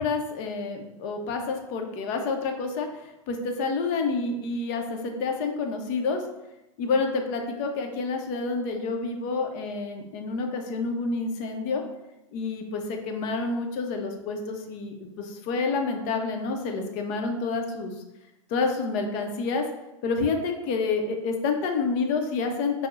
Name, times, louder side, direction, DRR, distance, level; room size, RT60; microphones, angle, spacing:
voice 1, 0.0-2.9 3.3-6.2 6.8-11.8 12.3-17.9 18.5-19.7 20.0-22.9, left 4 dB, 45° left, 4 dB, 0.6 m, -28 dB
5.8 x 2.0 x 2.4 m, 0.95 s
hypercardioid pair, 105°, 17 cm